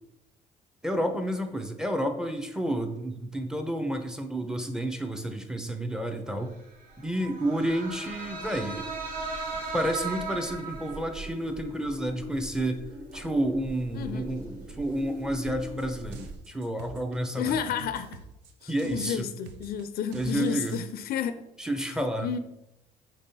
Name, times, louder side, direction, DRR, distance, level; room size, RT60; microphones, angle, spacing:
voice 1, 0.8-6.5 7.0-8.9 9.7-12.8 13.1-17.5 18.7-19.3 20.1-20.8 21.6-22.3, right 1 dB, 5° right, 5 dB, 0.5 m, -30 dB
sound 1, 6.9-16.4, right 2 dB, 50° right, 1.0 m, -38 dB
voice 2, 13.9-14.3 17.4-18.2 18.6-21.5 21.8-21.9 22.2-22.4, left 8 dB, 65° left, 10 dB, 0.4 m, -31 dB
sound 2, 15.5-20.8, right 5 dB, 80° right, 0.6 m, -47 dB
5.3 x 3.6 x 2.7 m, 0.90 s
cardioid pair, 110°, 17 cm